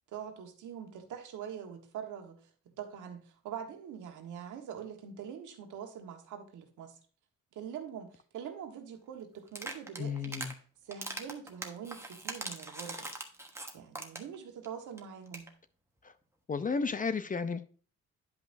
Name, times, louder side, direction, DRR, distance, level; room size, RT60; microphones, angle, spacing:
voice 1, 0.1-7.0 7.5-10.4 10.8-13.1 13.5-15.5, right 8 dB, 80° right, 1.4 m, -44 dB
sound 1, 9.5-10.5 10.9-14.4 14.6-14.7 15.0-15.1 15.3-15.5, right 2 dB, 10° right, 1.2 m, -41 dB
voice 2, 10.0-10.5 16.0-16.1 16.5-17.6, left 5 dB, 25° left, 0.6 m, -33 dB
10.5 x 5.3 x 2.6 m
cardioid pair, 90°, 30 cm